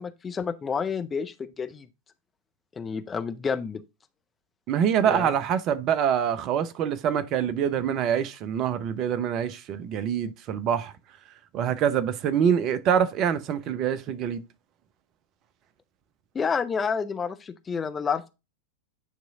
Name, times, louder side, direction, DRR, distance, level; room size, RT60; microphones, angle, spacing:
voice 1, 0.0-1.9 2.8-3.8 5.0-5.3 16.3-18.3, left 6 dB, 20° left, 0.6 m, -29 dB
voice 2, 4.7-10.9 11.5-14.4, right 8 dB, 35° right, 0.6 m, -25 dB
9.2 x 3.1 x 3.6 m
figure-of-eight pair, 90°, 0 cm